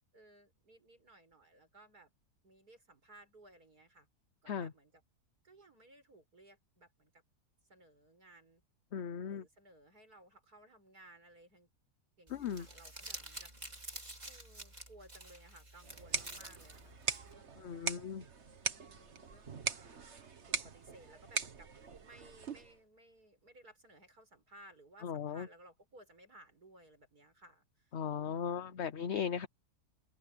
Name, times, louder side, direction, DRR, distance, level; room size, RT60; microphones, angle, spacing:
voice 1, 0.1-2.1 2.4-4.1 4.4-5.0 5.4-7.2 7.7-8.6 9.2-11.7 12.2-13.5 14.2-17.0 17.2-17.9 18.7-19.9 20.1-21.7 22.0-28.8, right 1 dB, 70° right, 7.7 m, -60 dB
voice 2, 8.9-9.4 12.3-12.7 17.6-18.2 25.0-25.5 27.9-29.5, left 7 dB, 50° left, 0.9 m, -37 dB
Crumpling crinkling, 12.3-17.3, right 1 dB, 25° right, 3.6 m, -49 dB
sound 1, 15.8-22.8, right 5 dB, 45° right, 1.7 m, -41 dB
open air
omnidirectional pair, 1.7 m